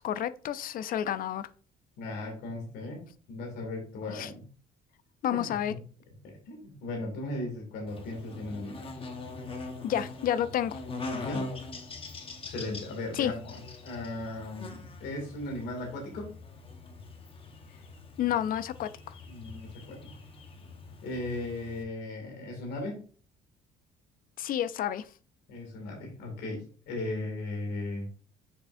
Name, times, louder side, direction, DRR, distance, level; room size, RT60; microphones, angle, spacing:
voice 1, 0.0-1.5 4.1-4.3 5.2-5.7 9.8-10.8 13.1-13.3 18.2-18.9 24.4-25.1, left 10 dB, 55° left, 0.4 m, -30 dB
voice 2, 2.0-3.0 3.3-4.4 5.3-5.8 6.2-8.8 11.1-11.5 12.5-16.3 19.3-20.1 21.0-23.0 25.5-28.1, left 2 dB, 85° left, 2.3 m, -37 dB
Buzz, 7.9-21.8, left 3 dB, 35° left, 1.1 m, -43 dB
6.9 x 5.5 x 2.6 m
cardioid pair, 110°, 17 cm